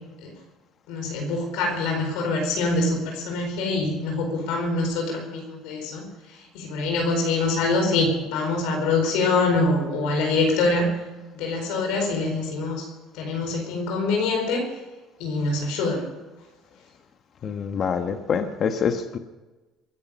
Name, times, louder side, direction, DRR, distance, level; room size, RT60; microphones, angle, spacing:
voice 1, 0.9-6.0 6.5-10.9 11.3-12.8 13.2-14.7 15.2-16.0, left 3 dB, 80° left, 2 dB, 4.5 m, -24 dB
voice 2, 17.4-19.2, left 6 dB, 45° left, 8 dB, 1.3 m, -25 dB
23.0 x 10.5 x 5.5 m, 1.2 s
supercardioid pair, 105°, 0 cm